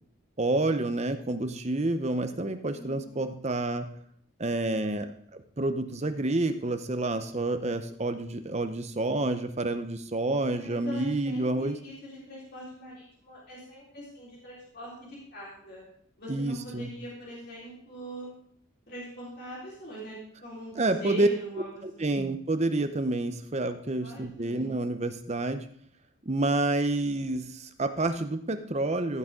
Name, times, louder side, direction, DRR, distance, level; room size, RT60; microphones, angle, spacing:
voice 1, 0.4-3.9 4.4-5.1 5.6-11.8 16.3-16.9 20.8-21.3 21.8-25.7 26.3-29.2, right 2 dB, 30° right, 8 dB, 0.7 m, -28 dB
voice 2, 2.7-3.2 10.4-15.9 16.2-18.3 18.9-22.2 24.0-24.7, right 1 dB, 50° left, -6 dB, 4.0 m, -42 dB
15.0 x 6.5 x 3.7 m, 0.64 s
head